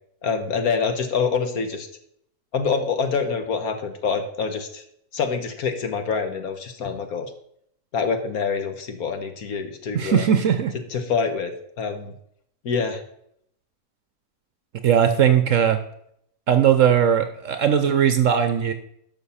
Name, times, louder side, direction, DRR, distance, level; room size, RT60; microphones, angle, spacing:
voice 1, 0.2-1.9 2.5-4.8 5.1-7.3 7.9-10.3 10.9-12.1 12.6-13.0, left 5 dB, 65° left, 7 dB, 1.5 m, -26 dB
voice 2, 9.9-10.7 14.8-15.8 16.5-18.7, right 8 dB, 60° right, 9 dB, 1.0 m, -19 dB
11.5 x 6.3 x 5.6 m, 0.71 s
omnidirectional pair, 1.8 m